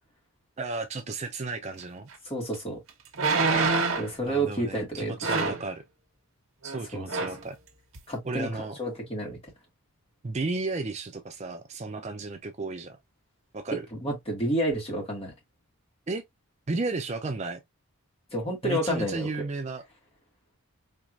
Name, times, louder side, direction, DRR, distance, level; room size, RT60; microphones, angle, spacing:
voice 1, 0.6-2.1 4.2-5.8 6.6-7.6 8.2-8.8 10.2-13.0 13.5-13.9 16.1-16.2 16.7-17.6 18.6-19.8, right 3 dB, 30° right, 0.4 m, -33 dB
sound 1, 2.1-2.2 3.1-4.2 5.2-5.7 6.6-6.8 7.1-7.4 8.0-8.1, right 3 dB, 60° right, 1.0 m, -26 dB
voice 2, 2.2-2.8 3.9-5.3 6.9-7.0 8.1-9.4 14.0-15.3 18.3-19.3, right 1 dB, 25° left, 1.7 m, -30 dB
4.4 x 2.9 x 2.4 m
head